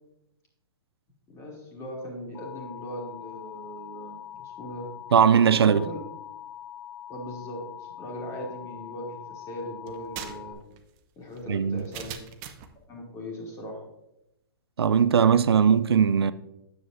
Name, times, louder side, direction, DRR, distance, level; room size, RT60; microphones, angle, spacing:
voice 1, 1.3-5.1 5.5-6.0 7.1-10.7 11.2-12.2 12.9-13.9, left 1 dB, 25° left, 2.6 m, -39 dB
Alarm, 2.3-10.5, left 10 dB, 80° left, 1.5 m, -43 dB
voice 2, 5.1-5.8 11.5-11.8 14.8-16.3, right 7 dB, 90° right, 0.5 m, -19 dB
sound 1, 9.9-12.8, right 9 dB, 35° right, 0.8 m, -42 dB
9.4 x 7.8 x 2.7 m
hypercardioid pair, 135°, 13 cm